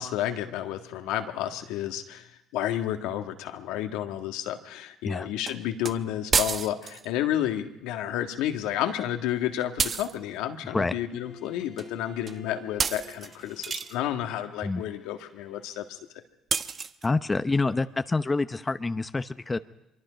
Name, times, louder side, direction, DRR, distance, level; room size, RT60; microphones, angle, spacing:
voice 1, 0.0-16.0, left 11 dB, 80° left, 6 dB, 1.7 m, -31 dB
sound 1, 5.5-5.6 5.8-5.9 6.3-7.1 9.8-10.2 11.8-11.9 12.3-12.4 12.8-14.0 16.5-17.1, right 5 dB, 40° right, 1.0 m, -29 dB
Bowed string instrument, 11.1-16.0, left 5 dB, 60° left, 2.3 m, -50 dB
voice 2, 17.0-19.6, left 3 dB, 25° left, 11 dB, 0.9 m, -27 dB
24.5 x 23.5 x 5.1 m, 0.91 s
hypercardioid pair, 65°, 0 cm